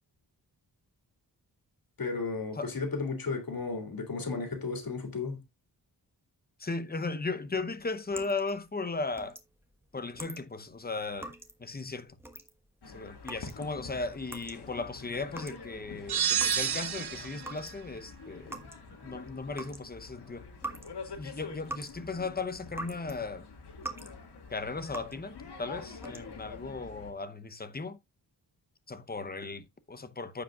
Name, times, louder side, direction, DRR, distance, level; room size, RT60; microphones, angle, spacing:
voice 1, 2.0-5.4, left 4 dB, 60° left, 2.4 m, -34 dB
voice 2, 6.6-9.4 9.9-11.3 11.6-12.2 12.9-18.6 18.9-20.5 21.0-23.5 24.5-28.0 28.9-30.4, left 3 dB, 25° left, 0.8 m, -36 dB
sound 1, 7.5-17.0 17.3-23.2 23.5-24.2 24.5-25.3 25.8-26.5, right 1 dB, 5° right, 1.2 m, -45 dB
sound 2, 12.8-27.1, left 4 dB, 85° left, 2.1 m, -47 dB
sound 3, 16.1-17.5, right 8 dB, 70° right, 1.1 m, -29 dB
15.0 x 5.0 x 2.4 m
wide cardioid pair, 135°, 40 cm